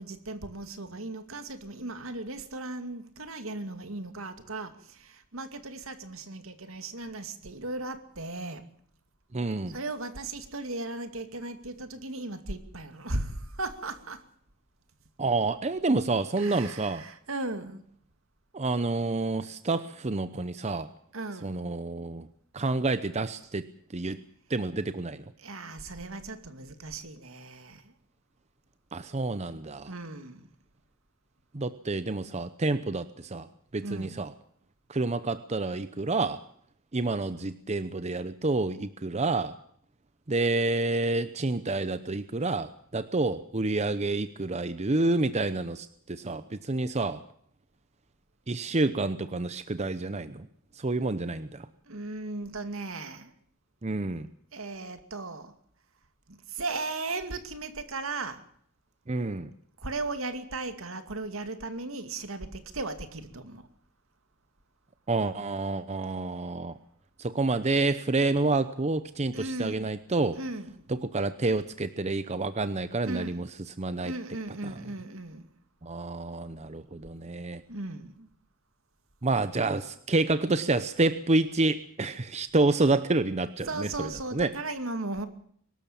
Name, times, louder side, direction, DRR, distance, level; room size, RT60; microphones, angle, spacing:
voice 1, 0.0-8.6 9.7-14.2 16.4-17.8 21.1-21.6 25.4-27.9 29.9-30.5 33.8-34.2 51.9-53.3 54.5-55.5 56.3-58.4 59.8-63.6 69.3-69.9 70.3-70.7 73.0-73.4 74.0-75.4 77.7-78.3 83.7-85.3, right 2 dB, 70° right, 2.4 m, -37 dB
voice 2, 9.3-9.7 15.2-17.0 18.5-20.9 21.4-22.3 22.5-24.2 24.5-25.2 28.9-29.9 31.5-33.5 33.7-34.3 34.9-36.4 36.9-39.6 40.3-47.2 48.5-50.5 50.7-51.7 53.8-54.3 59.1-59.5 65.1-66.8 67.2-70.4 70.9-74.1 74.6-74.8 75.8-77.6 79.2-84.5, right 2 dB, 30° right, 0.8 m, -28 dB
23.5 x 13.0 x 8.7 m
head